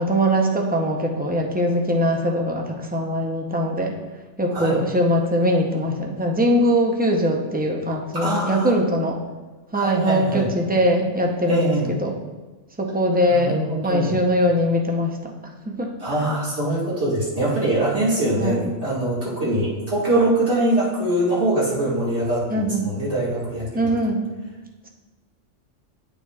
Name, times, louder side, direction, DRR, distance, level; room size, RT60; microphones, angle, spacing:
voice 1, 0.0-3.9 4.4-9.2 9.7-12.1 12.8-15.3 15.7-15.9 18.4-18.7 22.5-22.8 23.7-24.2, equal, 10° right, 1 dB, 0.5 m, -21 dB
voice 2, 8.2-8.7 9.7-10.5 11.5-11.9 13.3-14.2 16.0-23.9, right 1 dB, 60° right, -9 dB, 2.3 m, -23 dB
9.9 x 7.0 x 2.4 m, 1.2 s
omnidirectional pair, 1.3 m